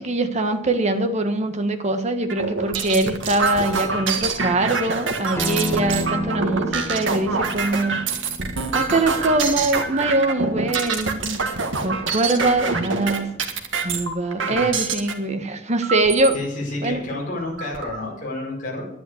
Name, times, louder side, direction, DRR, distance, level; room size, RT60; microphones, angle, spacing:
voice 1, 0.0-8.0 8.7-11.4 11.8-13.3 13.8-16.4 16.8-17.1, right 2 dB, 35° right, 7 dB, 1.4 m, -23 dB
sound 1, 2.3-15.1 15.8-16.4 16.9-17.0 17.3-18.0, right 4 dB, 80° right, 1.7 m, -26 dB
Acoustic guitar, 5.4-10.6, left 2 dB, 10° left, 0.9 m, -33 dB
voice 2, 16.3-18.9, left 2 dB, 45° left, -2 dB, 5.0 m, -30 dB
11.0 x 10.5 x 7.9 m, 0.85 s
head